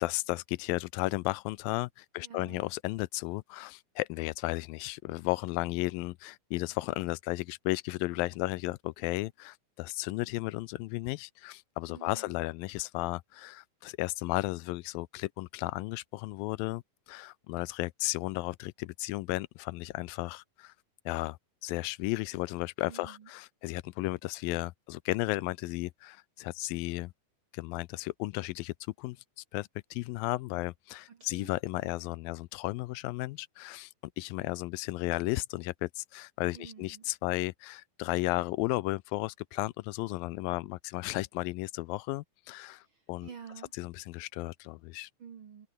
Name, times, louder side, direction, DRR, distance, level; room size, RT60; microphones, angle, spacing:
voice 1, 0.0-20.7 21.1-27.1 27.5-43.3 43.8-45.1, left 20 dB, 85° left, 2.3 m, -34 dB
voice 2, 2.2-2.6 11.9-12.3 22.9-23.3 31.1-31.5 36.5-37.0 42.8-43.7 45.2-45.7, right 7 dB, 50° right, 1.7 m, -49 dB
omnidirectional pair, 4.1 m